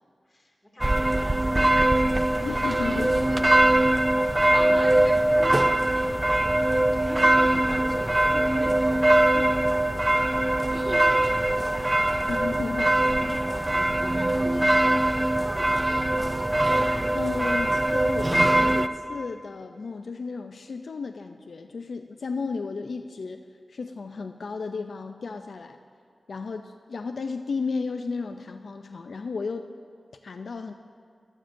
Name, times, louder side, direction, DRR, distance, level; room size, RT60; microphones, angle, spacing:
voice 1, 0.2-4.7 5.0-12.1 13.4-16.6, left 1 dB, 25° left, -2 dB, 2.2 m, -46 dB
sound 1, 0.8-18.9, right 1 dB, 20° right, 0.3 m, -22 dB
voice 2, 2.4-3.1 12.3-12.9 13.3-13.5 17.1-23.4 23.7-25.8 26.3-29.7 30.2-30.7, left 4 dB, 80° left, 7 dB, 0.3 m, -33 dB
13.5 x 12.5 x 2.6 m, 2.2 s
wide cardioid pair, 75°, 0 cm